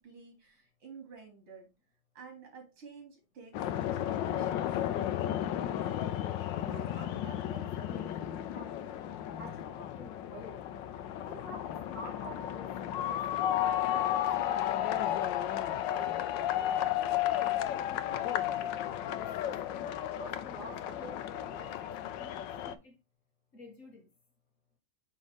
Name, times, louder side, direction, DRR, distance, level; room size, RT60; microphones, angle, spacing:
voice 1, 0.0-1.7 2.2-4.8, right 5 dB, 85° right, 3.6 m, -51 dB
sound 1, 3.5-22.7, left 11 dB, 75° left, 1.2 m, -33 dB
voice 2, 6.6-9.0 9.4-10.7 11.1-13.3 13.6-15.5 15.9-18.5 19.1-22.4 22.6-23.0 23.5-24.0, equal, 40° left, 1.7 m, -50 dB
6.3 x 5.6 x 3.2 m
omnidirectional pair, 2.3 m